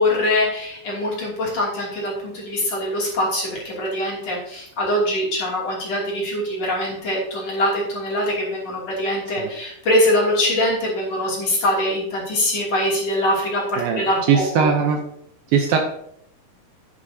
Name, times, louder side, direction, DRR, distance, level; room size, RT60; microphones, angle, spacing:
voice 1, 0.0-14.7, left 1 dB, 40° left, -4 dB, 3.6 m, -23 dB
voice 2, 13.8-15.0 15.5-15.8, right 6 dB, 75° right, 3 dB, 2.3 m, -20 dB
11.0 x 10.0 x 2.8 m, 0.73 s
omnidirectional pair, 4.7 m